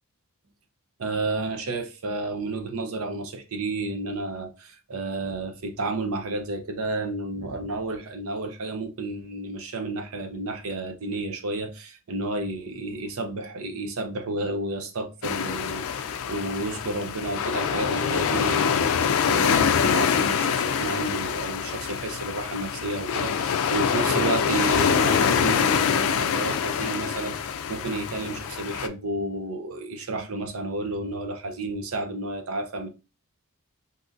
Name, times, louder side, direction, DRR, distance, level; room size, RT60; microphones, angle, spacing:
voice 1, 1.0-32.9, right 2 dB, 70° right, 0.7 m, -31 dB
sound 1, 15.2-28.9, left 7 dB, 65° left, 0.4 m, -25 dB
2.7 x 2.5 x 3.7 m
head